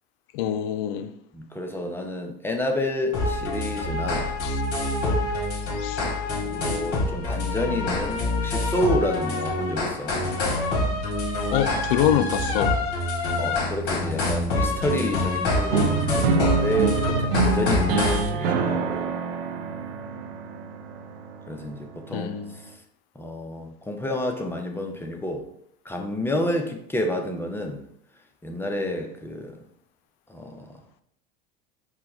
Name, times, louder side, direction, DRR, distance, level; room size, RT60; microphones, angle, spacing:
voice 1, 0.3-1.1 4.4-4.6 5.8-6.0 11.5-12.7 22.1-22.6, left 10 dB, 70° left, 0.5 m, -25 dB
voice 2, 1.3-4.3 6.4-10.2 13.4-19.1 21.5-22.3 23.2-25.5 25.9-27.8 28.4-29.6 30.3-30.7, left 1 dB, 10° left, 0.5 m, -29 dB
sound 1, 3.1-18.3, left 2 dB, 50° left, 1.6 m, -26 dB
sound 2, 15.7-21.7, right 4 dB, 85° right, 0.7 m, -26 dB
4.4 x 2.2 x 4.2 m
supercardioid pair, 105°, 29 cm